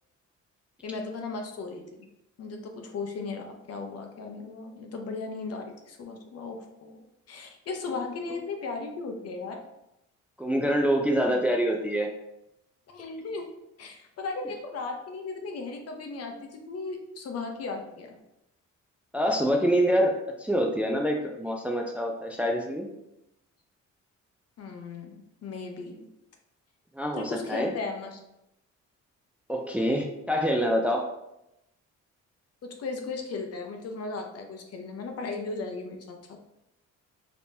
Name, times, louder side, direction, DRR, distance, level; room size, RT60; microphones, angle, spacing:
voice 1, 0.8-2.1 2.4-7.0 7.3-9.6 12.9-13.5 13.8-18.2 24.6-26.0 27.1-28.2 32.6-36.2, left 3 dB, 55° left, 3 dB, 0.7 m, -36 dB
voice 2, 10.4-12.1 19.1-20.1 20.4-22.9 26.9-27.7 29.5-31.0, equal, 5° right, 1 dB, 0.4 m, -25 dB
3.5 x 3.0 x 2.7 m, 0.86 s
cardioid pair, 90°, 30 cm